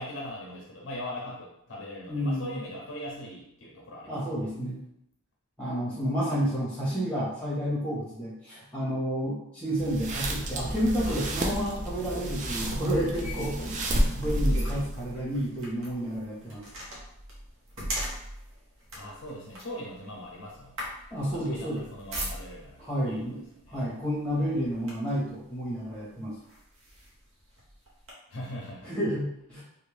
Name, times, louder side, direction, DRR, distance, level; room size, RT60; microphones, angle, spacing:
voice 1, 0.0-4.5 11.0-11.3 19.0-20.9 21.2-23.9 24.3-24.7 28.3-28.9, left 1 dB, 60° left, -2 dB, 0.6 m, -41 dB
voice 2, 2.1-2.6 4.1-4.8 5.6-16.6 21.1-21.8 22.8-23.4 23.7-26.3 28.8-29.6, equal, 5° left, -7 dB, 1.0 m, -30 dB
sound 1, 9.7-15.0, right 1 dB, 35° right, 0.4 m, -31 dB
sound 2, 10.0-22.8 23.7-23.9 24.3-25.3 25.9-26.0 26.5-28.1, equal, 60° right, 0.8 m, -38 dB
2.6 x 2.2 x 3.2 m, 0.77 s
head